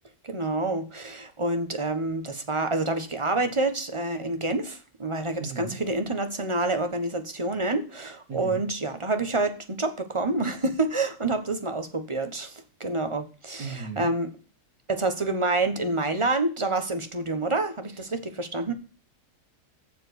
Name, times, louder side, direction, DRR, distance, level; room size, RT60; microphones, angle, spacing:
voice 1, 0.2-14.3 14.9-18.7, right 2 dB, 20° right, 8 dB, 1.2 m, -28 dB
voice 2, 5.4-5.8 8.3-8.7 13.6-14.1 17.9-18.1, right 4 dB, 85° right, 5 dB, 2.3 m, -37 dB
7.3 x 7.1 x 8.1 m, 0.36 s
omnidirectional pair, 1.7 m